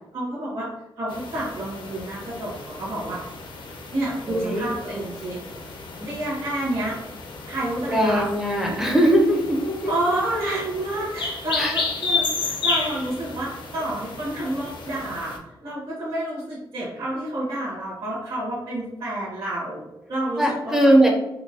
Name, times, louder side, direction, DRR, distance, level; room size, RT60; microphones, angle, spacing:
voice 1, 0.1-0.7 1.0-3.2 3.9-5.4 6.0-7.0 7.5-8.2 9.9-20.9, right 1 dB, 75° right, -8 dB, 1.3 m, -29 dB
sound 1, 1.1-15.4, left 3 dB, 65° left, 0.6 m, -32 dB
voice 2, 4.3-4.7 6.0-6.1 7.9-9.9 11.6-11.8 20.4-21.1, right 1 dB, 5° right, -2 dB, 0.5 m, -20 dB
4.4 x 2.1 x 2.7 m, 0.96 s
wide cardioid pair, 165°, 9 cm